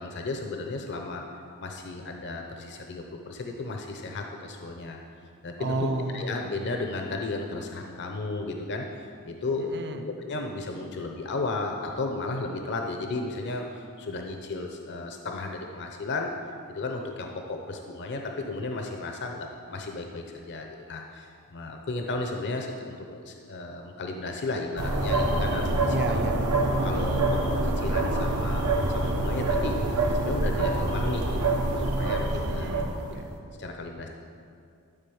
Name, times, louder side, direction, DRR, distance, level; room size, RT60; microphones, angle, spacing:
voice 1, 0.0-5.0 5.4-5.9 6.1-16.3 16.7-26.0 26.8-32.7 33.6-34.1, left 3 dB, 50° left, 3 dB, 0.7 m, -34 dB
voice 2, 5.6-6.2 9.6-10.0 25.9-26.4 32.4-33.3, right 2 dB, 50° right, 6 dB, 0.7 m, -32 dB
sound 1, 24.8-33.3, right 2 dB, 85° right, 1.1 m, -26 dB
12.0 x 4.1 x 6.9 m, 2.4 s
head